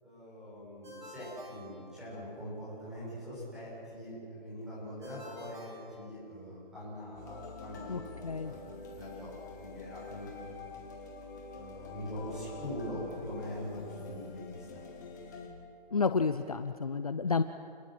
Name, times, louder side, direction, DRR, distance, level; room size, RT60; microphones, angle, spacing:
voice 1, 0.0-10.4 11.5-14.8, equal, ahead, -10 dB, 6.5 m, -43 dB
Ringtone, 0.8-2.5 5.0-6.7, equal, 50° right, 6.8 m, -50 dB
sound 1, 7.2-15.5, left 4 dB, 20° left, 2.1 m, -46 dB
voice 2, 7.9-8.5 15.9-17.4, left 5 dB, 40° left, 10 dB, 0.6 m, -30 dB
30.0 x 21.5 x 7.7 m, 2.4 s
hypercardioid pair, 175°, 29 cm